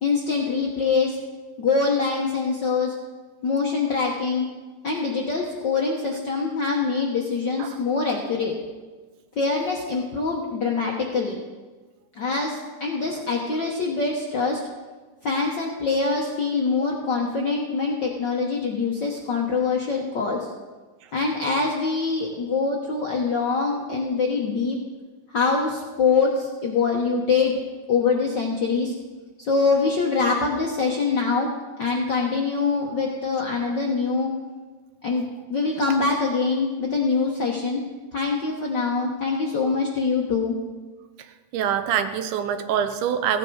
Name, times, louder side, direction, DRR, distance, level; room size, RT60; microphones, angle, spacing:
voice 1, 0.0-1.2 1.6-3.0 3.4-4.5 4.8-8.5 9.4-11.4 12.1-14.6 15.2-20.5 21.1-24.8 25.3-27.6 27.9-28.9 29.4-31.5 31.8-34.3 35.0-35.2 35.5-37.8 38.1-40.5, left 4 dB, 65° left, -1 dB, 1.1 m, -24 dB
voice 2, 41.5-43.4, right 8 dB, 85° right, 9 dB, 2.3 m, -24 dB
15.5 x 9.6 x 4.6 m, 1.3 s
omnidirectional pair, 3.5 m